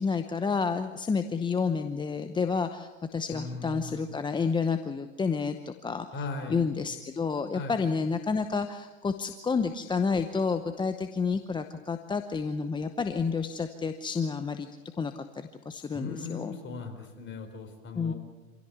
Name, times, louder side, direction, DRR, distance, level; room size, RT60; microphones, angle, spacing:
voice 1, 0.0-6.1 6.5-14.7 15.0-16.6 17.9-18.1, left 5 dB, 10° left, 8 dB, 0.8 m, -30 dB
voice 2, 3.3-4.1 6.1-6.6 7.5-7.7 15.9-18.1, left 3 dB, 25° left, 4 dB, 4.5 m, -38 dB
26.5 x 16.5 x 8.1 m, 1.2 s
hypercardioid pair, 110°, 41 cm